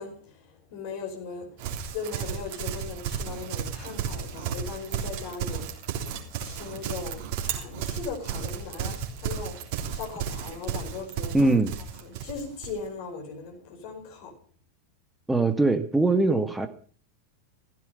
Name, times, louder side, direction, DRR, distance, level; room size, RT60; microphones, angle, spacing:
voice 1, 0.0-11.4 12.0-14.3, left 5 dB, 50° left, 5.2 m, -39 dB
Livestock farm animals working animals, 1.6-12.8, right 8 dB, 45° right, 3.4 m, -33 dB
voice 2, 11.3-11.7 15.3-16.7, right 2 dB, 5° right, 1.7 m, -22 dB
16.0 x 14.5 x 5.5 m
figure-of-eight pair, 90°, 0 cm